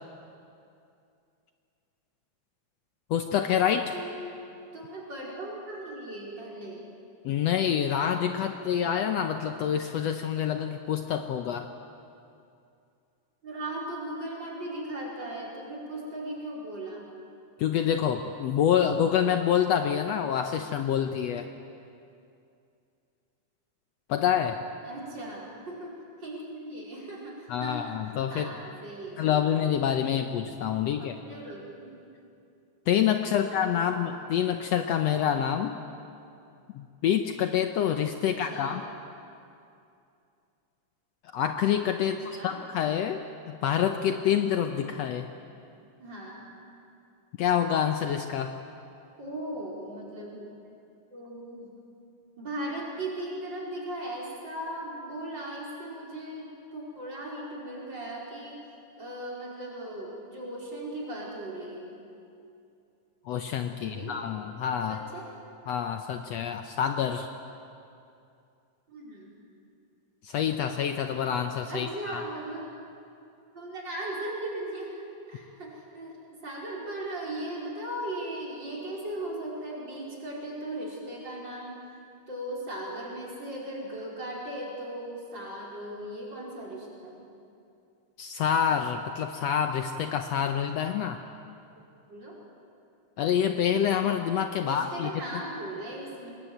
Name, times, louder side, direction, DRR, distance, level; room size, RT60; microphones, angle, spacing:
voice 1, 3.1-3.9 7.2-11.7 17.6-21.5 24.1-24.6 27.5-28.5 29.2-31.2 32.9-35.8 36.7-38.8 41.3-43.2 43.5-45.3 47.4-48.5 63.2-65.0 65.7-67.3 70.2-72.2 88.2-91.2 93.2-95.1, left 9 dB, 70° left, 7 dB, 1.8 m, -27 dB
voice 2, 3.9-4.5 4.7-6.8 13.4-17.1 24.8-28.0 28.3-29.5 31.3-31.9 33.4-33.5 33.7-33.8 38.2-38.8 42.0-42.6 46.0-46.4 49.2-50.6 51.1-51.7 52.4-58.6 59.0-62.0 63.7-64.1 64.9-65.3 68.9-69.3 71.7-72.7 73.5-76.2 76.4-81.8 82.3-87.2 92.1-92.4 94.6-96.3, right 1 dB, 35° right, -3 dB, 5.6 m, -38 dB
24.0 x 20.0 x 9.1 m, 2.6 s
omnidirectional pair, 3.4 m